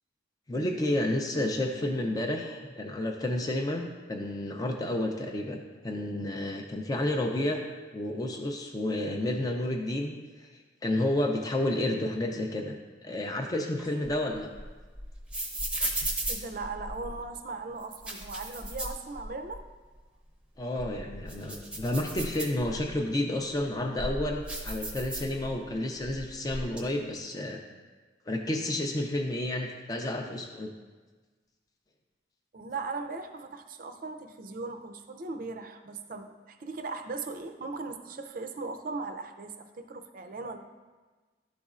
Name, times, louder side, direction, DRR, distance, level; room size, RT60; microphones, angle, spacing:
voice 1, 0.5-7.6 7.9-12.7 13.0-14.5 20.6-27.6 28.3-30.7, left 1 dB, 20° left, 2 dB, 0.4 m, -31 dB
sound 1, 13.8-17.2 17.8-19.6 20.0-20.1 20.6-23.0 23.6-25.7 26.0-26.8, right 1 dB, 5° right, 0.7 m, -36 dB
voice 2, 16.3-19.6 32.5-40.6, right 3 dB, 50° right, 7 dB, 0.5 m, -38 dB
11.5 x 4.1 x 2.4 m, 1.3 s
head